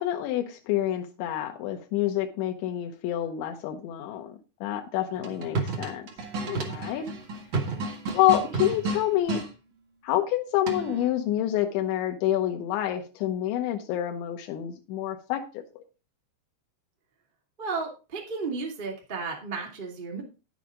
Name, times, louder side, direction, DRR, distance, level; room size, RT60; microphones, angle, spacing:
voice 1, 0.0-6.0 6.5-7.1 8.1-9.4 10.0-15.4, left 12 dB, 90° left, 3 dB, 3.4 m, -27 dB
sound 1, 5.1-9.5 10.7-11.1, right 3 dB, 55° right, 1.3 m, -31 dB
voice 2, 17.6-20.2, right 4 dB, 20° right, -1 dB, 1.6 m, -33 dB
10.0 x 9.0 x 3.8 m, 0.32 s
omnidirectional pair, 5.1 m